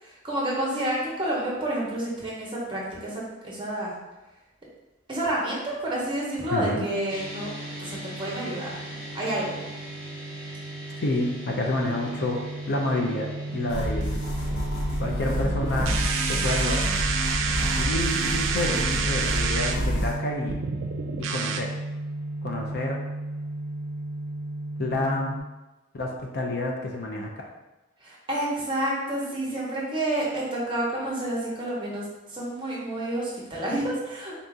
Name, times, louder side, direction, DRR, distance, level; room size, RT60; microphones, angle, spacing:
voice 1, 0.0-4.0 5.1-7.5 7.8-9.5 28.0-34.3, right 1 dB, 25° right, -5 dB, 1.0 m, -29 dB
voice 2, 6.5-6.9 11.0-12.4 12.7-13.3 13.5-14.2 15.0-15.9 16.3-16.8 17.8-20.6 21.3-21.7 22.4-23.0 24.8-25.4 25.9-26.1 26.3-27.4, left 2 dB, 50° left, 0 dB, 0.5 m, -28 dB
sound 1, 7.1-25.4, right 1 dB, 20° left, 1.3 m, -34 dB
sound 2, 13.7-20.1, equal, 80° left, 1.0 m, -29 dB
sound 3, 15.6-19.8 20.5-21.6, right 6 dB, 65° right, 0.4 m, -28 dB
4.0 x 2.7 x 3.5 m, 1.1 s
head